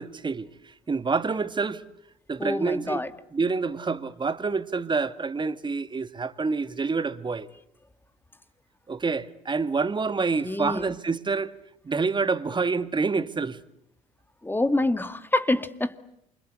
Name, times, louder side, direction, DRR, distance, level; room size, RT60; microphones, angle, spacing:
voice 1, 0.0-1.8 2.3-3.0 3.3-7.5 8.9-11.5 11.8-13.6, right 4 dB, 25° right, 1.9 m, -27 dB
voice 2, 2.4-3.1 10.4-10.9 14.4-16.0, left 2 dB, 10° left, 1.9 m, -26 dB
28.5 x 25.5 x 8.1 m
hypercardioid pair, 60°, 17 cm